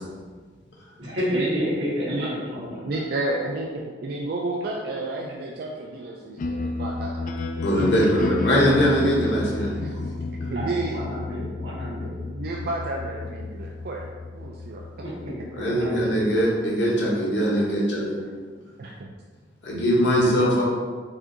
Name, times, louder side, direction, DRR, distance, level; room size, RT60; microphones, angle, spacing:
voice 1, 1.0-2.8 10.5-12.1 15.0-16.1, equal, 80° right, -6 dB, 1.5 m, -30 dB
voice 2, 2.1-7.2 9.7-10.0 10.5-11.0 11.9-12.0 12.3-14.1 14.3-14.8 15.8-16.0 18.8-19.1, right 2 dB, 55° right, -1 dB, 0.4 m, -31 dB
sound 1, 6.4-16.5, left 3 dB, 45° left, 0.3 m, -31 dB
voice 3, 7.6-10.1 15.5-18.1 19.6-20.6, equal, 75° left, -4 dB, 1.1 m, -22 dB
4.8 x 2.6 x 3.8 m, 1.5 s
head